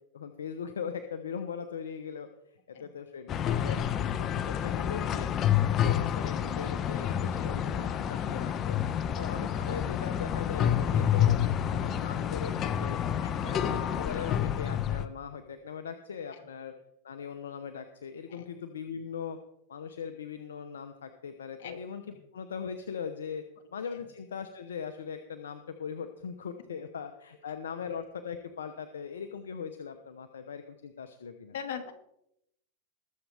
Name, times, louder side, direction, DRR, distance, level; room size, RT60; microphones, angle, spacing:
voice 1, 0.1-2.3 2.7-5.3 5.6-8.8 9.2-13.0 13.4-16.7 17.0-19.4 19.7-23.4 23.7-31.5, left 6 dB, 90° left, 8 dB, 0.9 m, -40 dB
sound 1, 3.3-15.1, left 9 dB, 35° left, 0.8 m, -29 dB
voice 2, 13.2-13.6 18.3-18.5 21.6-21.8 23.9-24.0 31.5-31.9, left 7 dB, 75° left, 5 dB, 2.0 m, -40 dB
21.0 x 7.5 x 3.5 m, 0.78 s
hypercardioid pair, 110°, 0 cm